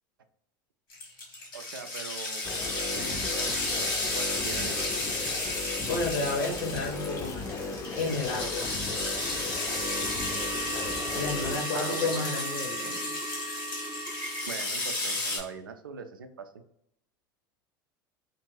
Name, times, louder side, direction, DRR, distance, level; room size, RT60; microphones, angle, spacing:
sound 1, 0.9-15.4, left 2 dB, 85° left, 1.2 m, -33 dB
voice 1, 1.5-4.9 11.7-12.2 14.5-16.5, right 5 dB, 90° right, 8 dB, 0.4 m, -42 dB
sound 2, 2.4-11.6, left 4 dB, 30° left, 0.5 m, -37 dB
sound 3, 2.8-4.6 5.4-14.5, right 2 dB, 25° right, 0.6 m, -40 dB
voice 2, 5.9-7.7 8.0-8.7 11.1-13.0, left 2 dB, 60° left, -1 dB, 0.7 m, -31 dB
2.5 x 2.5 x 3.1 m, 0.75 s
hypercardioid pair, 85°, 11 cm